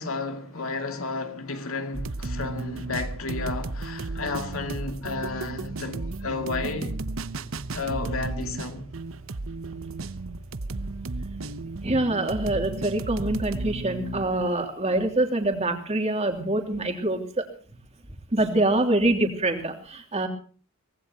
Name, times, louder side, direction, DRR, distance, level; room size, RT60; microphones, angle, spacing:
voice 1, 0.0-6.9 7.7-8.9, left 3 dB, 70° left, 2.6 m, -32 dB
sound 1, 1.9-14.5, right 3 dB, 65° right, 0.9 m, -34 dB
voice 2, 11.8-17.4 18.3-20.3, right 2 dB, 30° right, 2.9 m, -25 dB
24.0 x 18.5 x 2.9 m
head